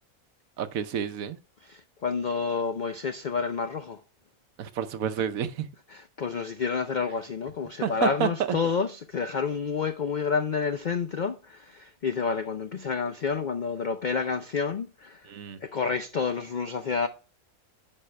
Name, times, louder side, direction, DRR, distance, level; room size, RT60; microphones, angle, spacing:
voice 1, 0.6-1.4 4.6-5.7 7.8-8.3 15.3-15.6, right 8 dB, 70° right, 1.1 m, -29 dB
voice 2, 1.6-4.0 5.9-15.3 15.6-17.1, left 5 dB, 75° left, 0.4 m, -29 dB
9.9 x 5.4 x 3.2 m
omnidirectional pair, 1.5 m